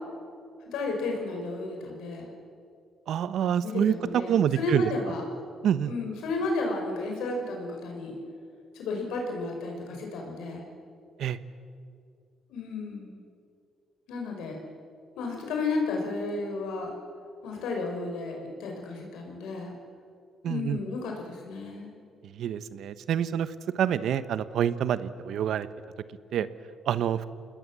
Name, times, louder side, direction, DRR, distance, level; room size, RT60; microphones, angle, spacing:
voice 1, 0.7-2.3 3.6-5.2 5.9-8.2 8.7-10.7 12.5-13.2 14.1-14.6 15.2-16.9 17.4-19.7 20.4-21.9, left 3 dB, 90° left, 1 dB, 5.7 m, -32 dB
voice 2, 3.1-3.9 4.3-4.8 5.6-5.9 11.2-11.4 20.4-20.8 22.4-25.7 26.3-26.5 26.9-27.2, right 9 dB, 75° right, 14 dB, 1.0 m, -27 dB
27.5 x 19.5 x 7.6 m, 2.4 s
cardioid pair, 90°, 0 cm